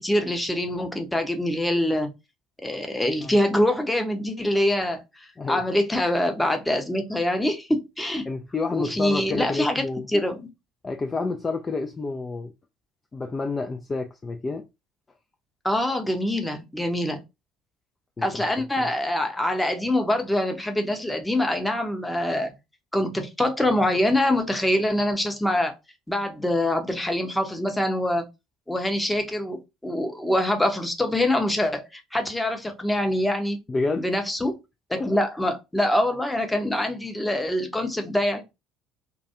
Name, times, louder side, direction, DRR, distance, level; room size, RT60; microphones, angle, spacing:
voice 1, 0.0-2.1 2.6-5.0 5.5-8.2 8.7-9.8 10.1-10.5 15.6-17.2 18.2-22.5 22.9-25.7 26.1-28.2 28.7-33.6 34.0-34.5 34.9-38.4, left 1 dB, 10° left, 0.7 m, -24 dB
voice 2, 8.3-10.1 10.8-12.5 13.1-14.6 18.2-18.4 18.8-18.9 33.7-34.1 35.0-35.2, left 3 dB, 25° left, 0.3 m, -29 dB
2.3 x 2.3 x 2.8 m
figure-of-eight pair, 60°, 0 cm